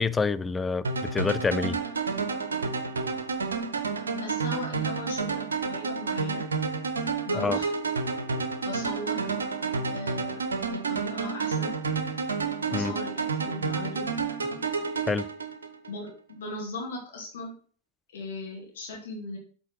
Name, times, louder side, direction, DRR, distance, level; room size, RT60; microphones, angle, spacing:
voice 1, 0.0-1.8 7.3-7.6 12.7-12.9 15.1-15.3, left 4 dB, 15° left, 0.4 m, -27 dB
sound 1, 0.8-15.9, right 4 dB, 70° right, 1.0 m, -30 dB
voice 2, 4.1-6.5 7.3-7.7 8.6-9.4 9.8-11.8 12.7-14.0 15.9-17.5 18.1-19.4, left 2 dB, 60° left, 2.2 m, -38 dB
7.7 x 4.4 x 6.1 m
figure-of-eight pair, 90°, 0 cm